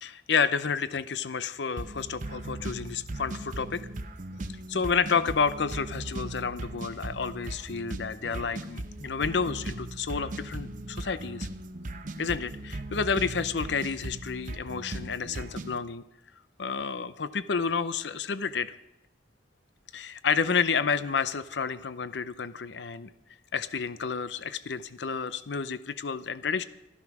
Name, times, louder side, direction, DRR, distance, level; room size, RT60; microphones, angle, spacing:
voice 1, 0.0-3.8 4.7-11.5 12.2-16.0 16.6-18.7 19.9-23.1 23.5-26.6, left 5 dB, 65° left, 14 dB, 0.6 m, -30 dB
sound 1, 1.8-15.8, right 2 dB, 45° right, 0.8 m, -38 dB
14.5 x 12.5 x 6.0 m, 0.89 s
head